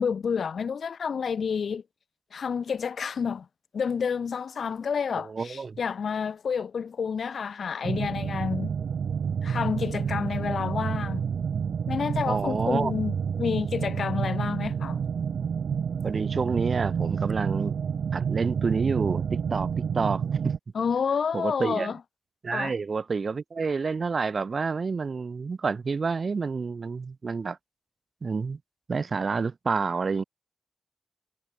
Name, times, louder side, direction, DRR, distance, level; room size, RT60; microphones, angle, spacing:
voice 1, 0.0-1.8 2.3-3.5 3.7-8.8 9.4-11.2 11.9-15.0 20.7-22.0 22.5-22.7, left 6 dB, 75° left, 3.1 m, -29 dB
voice 2, 5.2-5.8 12.3-13.0 16.0-17.7 18.1-20.2 21.3-21.9 22.4-27.6 28.2-28.6 28.9-30.2, right 4 dB, 50° right, 6.7 m, -28 dB
sound 1, 7.8-20.6, right 7 dB, 90° right, 1.1 m, -29 dB
wide cardioid pair, 115°, 0 cm